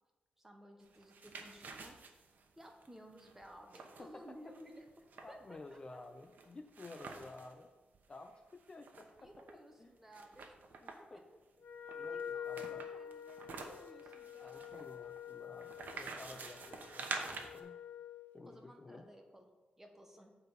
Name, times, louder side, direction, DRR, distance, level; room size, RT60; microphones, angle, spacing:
voice 1, 0.4-2.0 2.5-6.0 9.2-10.6 11.0-11.2 12.1-14.9 18.4-19.5 19.8-20.3, equal, 10° right, 3 dB, 1.3 m, -56 dB
sound 1, 0.9-7.5 7.9-8.0 8.3-9.5 10.1-11.2 11.9-17.6, right 4 dB, 65° right, 1.1 m, -48 dB
voice 2, 4.0-4.4 5.2-7.7 8.1-9.9 10.8-11.2 12.0-12.9 14.4-17.8 18.3-19.1, left 2 dB, 30° left, 6 dB, 0.5 m, -53 dB
Wind instrument woodwind instrument, 11.6-18.3, left 8 dB, 75° left, 0.9 m, -47 dB
9.1 x 3.9 x 7.2 m, 1.2 s
wide cardioid pair, 110°, 3 cm